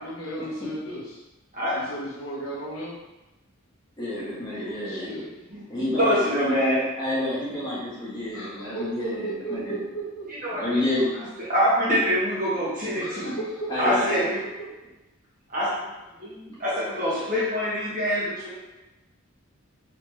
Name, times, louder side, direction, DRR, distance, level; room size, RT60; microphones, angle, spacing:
voice 1, 0.0-1.2 1.7-3.0 4.5-5.3 8.3-10.3 12.9-14.7, right 2 dB, 75° left, -4 dB, 1.1 m, -35 dB
voice 2, 1.5-1.9 4.6-5.1 5.5-6.8 10.3-10.8 11.4-13.4 13.8-14.4 15.5-15.8 16.2-18.6, equal, 40° right, -8 dB, 1.6 m, -25 dB
voice 3, 4.0-5.1 5.7-6.5 7.0-9.8 10.6-11.1 13.7-14.2, left 1 dB, 20° left, -8 dB, 1.5 m, -29 dB
4.2 x 3.9 x 3.2 m, 1.0 s
head